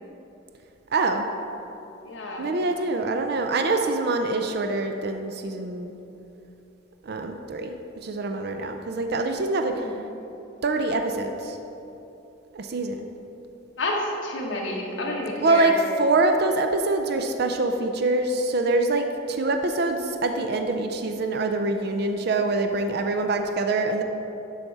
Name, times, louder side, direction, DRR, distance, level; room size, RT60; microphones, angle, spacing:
voice 1, 0.9-1.3 2.4-5.9 7.1-7.7 8.0-9.8 10.6-11.6 12.5-13.1 15.4-15.7 16.0-24.0, right 2 dB, 55° right, 5 dB, 0.4 m, -25 dB
voice 2, 2.0-2.6 9.7-10.1 13.8-15.8, left 1 dB, 65° left, -1 dB, 1.2 m, -30 dB
12.0 x 4.2 x 4.6 m, 2.9 s
head